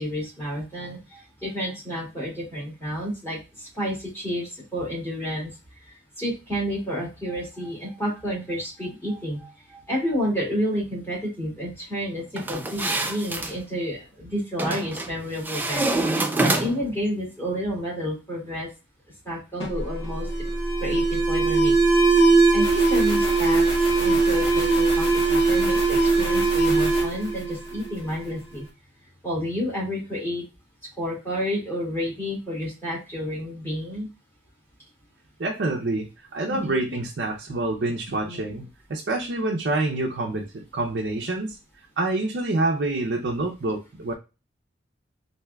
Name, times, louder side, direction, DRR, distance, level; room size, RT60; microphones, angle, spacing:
voice 1, 0.0-5.5 6.2-15.9 16.4-18.7 19.2-20.3 20.8-21.8 22.5-23.7 23.9-28.6 29.2-30.4 31.0-34.1 36.5-36.7 38.2-38.4, equal, 15° left, -5 dB, 2.1 m, -30 dB
sound 1, 12.4-13.5 14.6-15.1 15.4-16.9, right 2 dB, 10° right, 0.4 m, -26 dB
Alarm, 19.6-28.2, right 3 dB, 30° left, 1.5 m, -20 dB
voice 2, 35.4-41.6 42.0-44.1, right 2 dB, 60° right, 0 dB, 0.5 m, -27 dB
4.4 x 2.7 x 2.2 m, 0.28 s
head